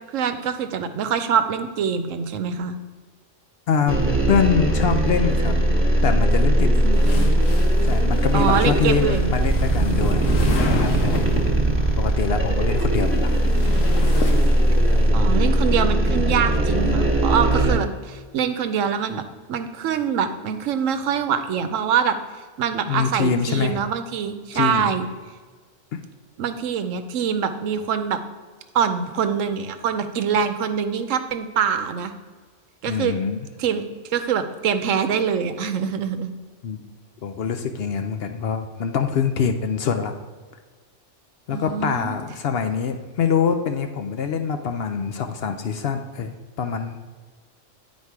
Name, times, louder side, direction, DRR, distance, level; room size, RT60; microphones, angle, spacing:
voice 1, 0.1-2.8 6.8-7.2 8.3-9.4 15.1-19.2 19.5-22.2 22.6-25.0 26.4-28.2 28.7-32.1 32.8-33.2 33.6-36.3 41.5-42.2, right 7 dB, 85° right, 9 dB, 1.0 m, -24 dB
voice 2, 3.7-4.0 4.3-5.6 6.0-6.7 7.8-10.3 10.7-11.2 12.0-13.3 22.9-23.9 24.5-24.9 25.9-26.0 32.9-33.4 36.6-36.9 37.2-40.1 41.5-47.0, left 6 dB, 65° left, 7 dB, 0.7 m, -24 dB
sound 1, 3.9-17.8, right 1 dB, 10° right, 1.1 m, -19 dB
sound 2, 6.9-11.6 12.6-15.1, left 4 dB, 85° left, 1.3 m, -32 dB
9.8 x 4.3 x 4.6 m, 1.5 s
omnidirectional pair, 1.3 m